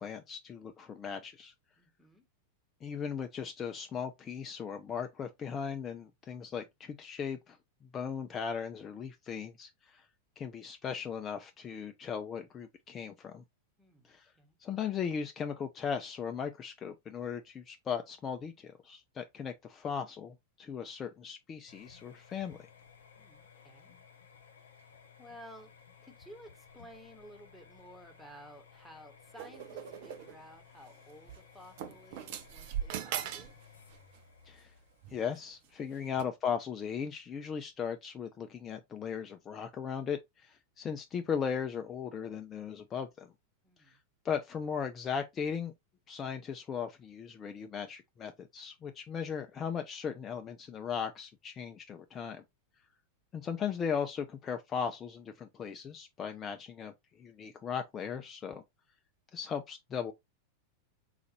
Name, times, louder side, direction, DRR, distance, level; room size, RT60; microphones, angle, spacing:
voice 1, 0.0-1.5 2.8-7.6 7.9-10.1 10.4-13.4 14.0-14.3 14.6-22.6 34.5-34.7 35.1-43.3 43.8-44.0 44.2-45.7 46.1-52.4 53.3-58.6 59.3-60.1, left 7 dB, 25° left, 0.4 m, -37 dB
voice 2, 1.8-2.3 13.8-14.6 23.2-23.9 24.8-25.7 26.0-33.5 36.0-36.1 43.6-44.0, equal, ahead, 1.1 m, -54 dB
sound 1, 21.7-36.2, left 6 dB, 65° left, 0.6 m, -58 dB
sound 2, 29.4-30.4 31.3-31.4 31.8-33.6 33.8-34.2 35.0-35.4 36.2-36.3, right 9 dB, 50° right, 0.5 m, -39 dB
3.9 x 2.5 x 3.1 m
figure-of-eight pair, 90°, 0 cm